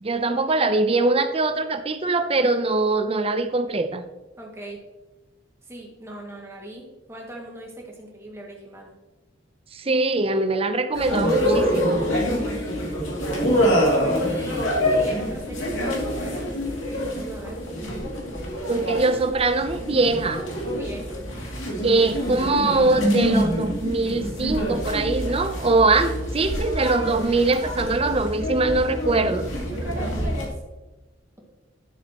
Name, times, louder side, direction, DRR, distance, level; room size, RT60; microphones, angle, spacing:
voice 1, 0.0-4.0 9.7-12.0 18.7-20.4 21.8-29.5, right 3 dB, 30° right, 10 dB, 0.6 m, -22 dB
voice 2, 4.4-4.8 5.6-8.9 13.5-17.6 20.6-21.2 29.6-30.6, right 1 dB, 15° right, -2 dB, 2.1 m, -40 dB
sound 1, 10.9-30.5, equal, 90° left, 2.6 m, -26 dB
12.0 x 7.2 x 3.0 m, 1.1 s
head